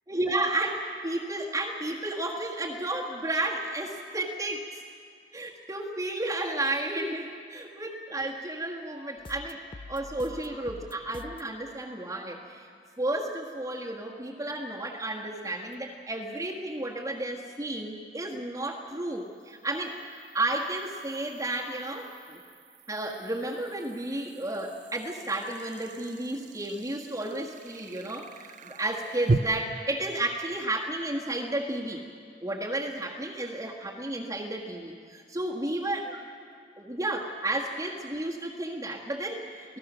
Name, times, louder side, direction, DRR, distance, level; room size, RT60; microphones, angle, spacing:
voice 1, 0.1-4.8 5.3-9.6 9.9-12.7 13.0-22.4 22.9-32.0 32.4-36.2 36.8-39.8, right 1 dB, 20° right, -2 dB, 1.6 m, -32 dB
sound 1, 9.2-11.6, left 3 dB, 30° left, 0.4 m, -45 dB
sound 2, 15.7-15.8 19.2-29.4, right 3 dB, 45° right, 0.6 m, -38 dB
30.0 x 17.5 x 6.3 m, 2.2 s
head